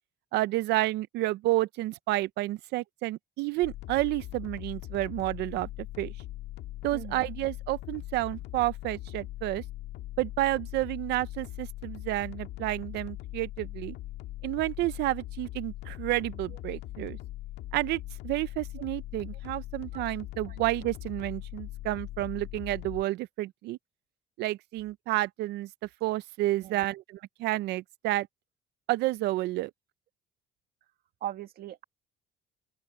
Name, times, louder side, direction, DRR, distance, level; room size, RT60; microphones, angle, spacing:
voice 1, 0.3-5.7 6.0-6.1 6.8-9.6 10.2-14.0 14.4-17.2 17.7-23.8 24.4-25.7 26.0-28.3 28.9-29.7, right 17 dB, 80° right, 0.5 m, -30 dB
sound 1, 3.6-23.0, left 16 dB, 90° left, 1.8 m, -41 dB
voice 2, 6.9-7.3 19.9-20.0 20.5-20.6 26.6-26.8 31.2-31.8, right 12 dB, 65° right, 1.8 m, -39 dB
open air
cardioid pair, 110°, 17 cm